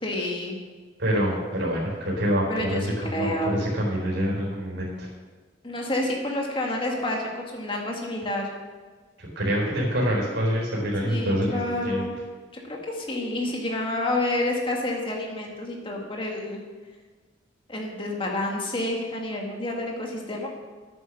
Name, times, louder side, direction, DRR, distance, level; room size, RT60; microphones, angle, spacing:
voice 1, 0.0-0.6 2.5-3.7 5.6-8.5 11.0-12.1 12.5-16.6 17.7-20.5, left 1 dB, 25° left, 0 dB, 1.9 m, -29 dB
voice 2, 1.0-5.1 9.2-12.1, equal, 65° right, -3 dB, 4.3 m, -26 dB
9.7 x 9.2 x 6.5 m, 1.4 s
head